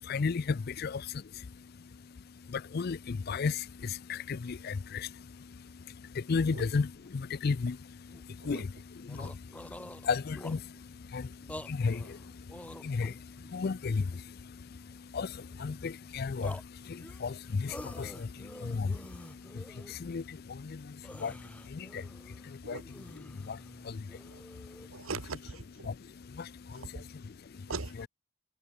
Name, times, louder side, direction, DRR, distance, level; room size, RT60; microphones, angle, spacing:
voice 1, 0.0-25.1 25.8-27.7, left 4 dB, 45° left, 0.4 m, -36 dB
sound 1, 7.1-7.2 7.4-7.5 8.0-8.3 8.7-8.8 9.0-10.8 11.4-13.5 14.1-14.9 15.4-16.0 16.4-20.0 20.4-20.5 20.8-24.9, left 1 dB, 5° left, 3.3 m, -48 dB
voice 2, 24.9-25.9 26.7-27.0 27.7-28.1, right 4 dB, 75° right, 1.2 m, -41 dB
head